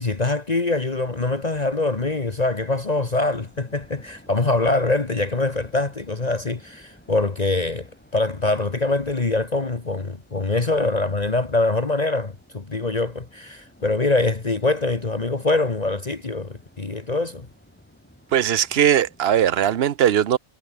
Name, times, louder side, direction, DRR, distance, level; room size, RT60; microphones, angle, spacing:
voice 1, 0.0-17.5, left 2 dB, 35° left, 1.6 m, -24 dB
sound 1, 0.6-19.9, equal, 10° left, 5.9 m, -53 dB
voice 2, 18.3-20.4, right 10 dB, 65° right, 1.0 m, -19 dB
omnidirectional pair, 1.2 m